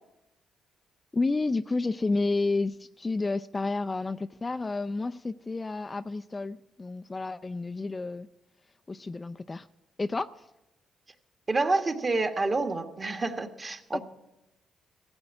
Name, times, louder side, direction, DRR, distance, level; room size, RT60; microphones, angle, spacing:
voice 1, 1.1-8.3 8.9-9.7 10.0-10.5 13.9-14.0, left 3 dB, 25° left, 11 dB, 0.4 m, -30 dB
voice 2, 11.5-14.0, right 3 dB, 30° right, 7 dB, 1.5 m, -28 dB
15.0 x 7.9 x 9.6 m, 0.92 s
cardioid pair, 90°, 0 cm